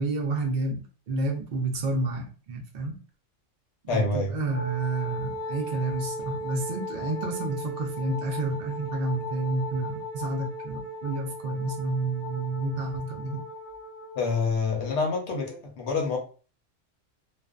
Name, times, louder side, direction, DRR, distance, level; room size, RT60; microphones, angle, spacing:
voice 1, 0.0-3.0 3.9-13.4, right 2 dB, 60° right, 2 dB, 0.5 m, -30 dB
voice 2, 3.9-4.4 14.1-16.2, left 4 dB, 65° left, 1 dB, 1.0 m, -27 dB
Wind instrument woodwind instrument, 4.5-14.5, equal, 35° left, 0.7 m, -37 dB
2.5 x 2.2 x 2.3 m, 0.37 s
omnidirectional pair, 1.3 m